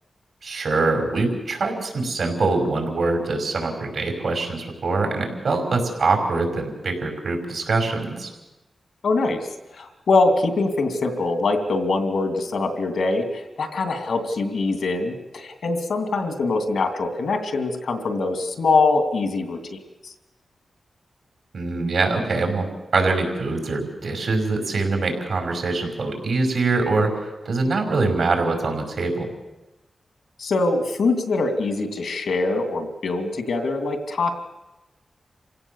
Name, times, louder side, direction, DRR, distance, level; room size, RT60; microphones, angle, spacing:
voice 1, 0.4-8.3 21.5-22.7 22.9-29.3, right 3 dB, 80° right, 3 dB, 5.7 m, -23 dB
voice 2, 9.0-9.5 9.7-19.8 30.4-34.3, left 3 dB, 85° left, 6 dB, 2.8 m, -23 dB
27.5 x 16.5 x 7.3 m, 1.0 s
cardioid pair, 50°, 0 cm